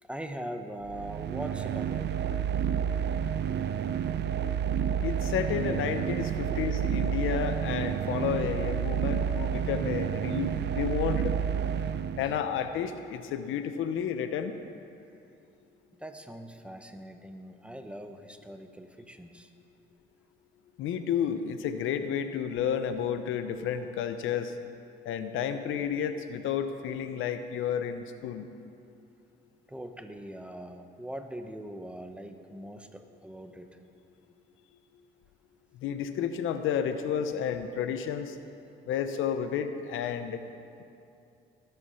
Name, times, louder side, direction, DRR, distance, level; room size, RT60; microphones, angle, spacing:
voice 1, 0.0-2.2 6.5-6.6 12.2-12.3 16.0-19.5 29.7-33.7, right 1 dB, 5° right, 6 dB, 1.1 m, -41 dB
sound 1, 0.8-12.7, right 8 dB, 60° right, 0.6 m, -30 dB
voice 2, 5.0-11.3 12.2-14.5 20.8-24.5 25.1-28.5 35.8-38.4 38.9-40.4, left 8 dB, 85° left, 9 dB, 0.8 m, -31 dB
19.0 x 8.1 x 5.7 m, 2.7 s
cardioid pair, 90°, 20 cm